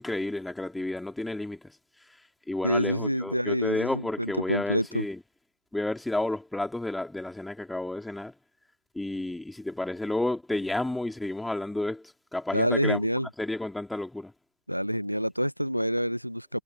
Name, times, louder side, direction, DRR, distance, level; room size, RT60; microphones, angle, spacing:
voice 1, 0.0-1.6 2.5-5.2 5.7-8.3 9.0-13.0 13.4-14.3, left 2 dB, 5° left, 3.6 m, -31 dB
voice 2, 2.6-5.0 12.5-13.3 14.7-16.6, equal, 90° right, 1.3 m, -27 dB
figure-of-eight pair, 90°, 0 cm